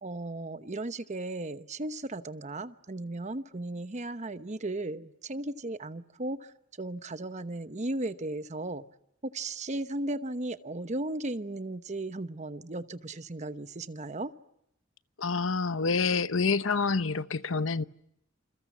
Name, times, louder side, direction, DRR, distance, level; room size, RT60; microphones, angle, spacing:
voice 1, 0.0-8.9 9.2-14.3, right 2 dB, 35° right, 1.0 m, -36 dB
voice 2, 15.2-17.8, left 4 dB, 80° left, 1.0 m, -27 dB
28.5 x 28.5 x 7.3 m
head